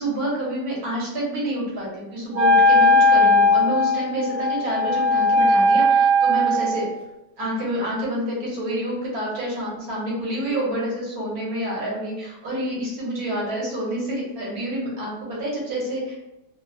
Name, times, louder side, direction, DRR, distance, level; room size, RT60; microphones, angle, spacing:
voice 1, 0.0-6.9 7.4-16.1, equal, 65° right, -5 dB, 1.4 m, -28 dB
Wind instrument woodwind instrument, 2.3-6.9, left 1 dB, 80° right, 0.6 m, -18 dB
3.0 x 2.0 x 2.5 m, 0.92 s
omnidirectional pair, 1.7 m